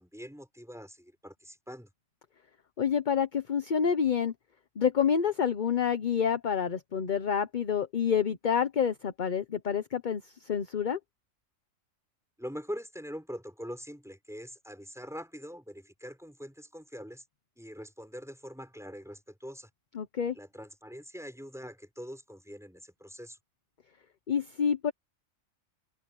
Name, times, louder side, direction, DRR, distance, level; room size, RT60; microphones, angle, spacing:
voice 1, 0.0-1.9 12.4-17.2 17.6-19.7 20.3-23.4, equal, ahead, 6.2 m, -43 dB
voice 2, 2.8-4.3 4.8-11.0 19.9-20.3 24.3-24.9, left 7 dB, 40° left, 0.9 m, -28 dB
open air
omnidirectional pair, 1.4 m